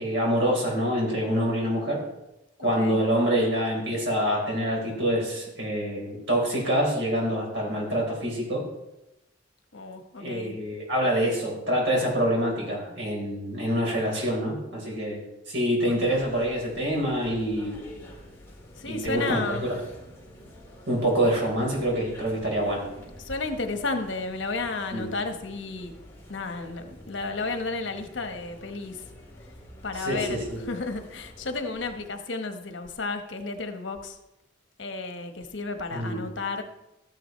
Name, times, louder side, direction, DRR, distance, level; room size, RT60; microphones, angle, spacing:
voice 1, 0.0-2.0 2.6-8.6 10.2-17.8 18.9-19.7 20.9-22.8 24.9-25.1 29.9-30.6 35.9-36.3, equal, 70° right, -1 dB, 4.0 m, -26 dB
voice 2, 2.6-3.0 9.7-10.5 15.8-16.1 18.8-19.7 23.2-25.9 26.3-29.0 29.8-34.2 34.8-36.6, left 3 dB, 75° left, 6 dB, 1.1 m, -32 dB
sound 1, 15.9-32.1, equal, 15° left, 2.2 m, -47 dB
14.0 x 9.9 x 3.1 m, 0.92 s
head